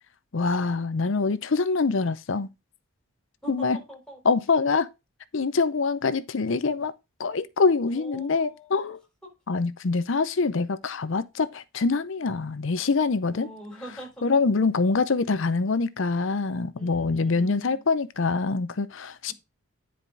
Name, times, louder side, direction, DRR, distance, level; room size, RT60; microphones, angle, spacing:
voice 1, 0.3-2.5 3.5-3.8 4.2-4.9 5.3-6.9 7.2-9.0 9.5-13.5 14.2-19.3, left 4 dB, 55° left, 0.6 m, -25 dB
voice 2, 3.4-4.2 7.9-8.7 9.2-9.3 13.3-14.3 16.8-17.8 19.3-19.4, right 1 dB, 5° left, 3.6 m, -44 dB
9.8 x 4.9 x 3.8 m
head